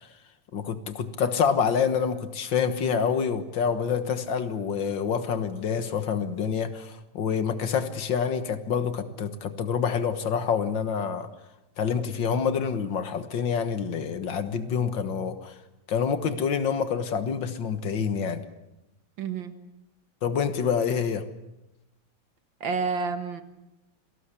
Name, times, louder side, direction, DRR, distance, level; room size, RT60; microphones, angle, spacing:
voice 1, 0.5-11.3 11.8-15.5 15.9-18.4 20.2-21.2, left 6 dB, 80° left, 10 dB, 2.1 m, -27 dB
voice 2, 19.2-19.5 22.6-23.4, right 5 dB, 85° right, 9 dB, 2.4 m, -29 dB
27.0 x 18.5 x 8.4 m, 0.93 s
omnidirectional pair, 2.0 m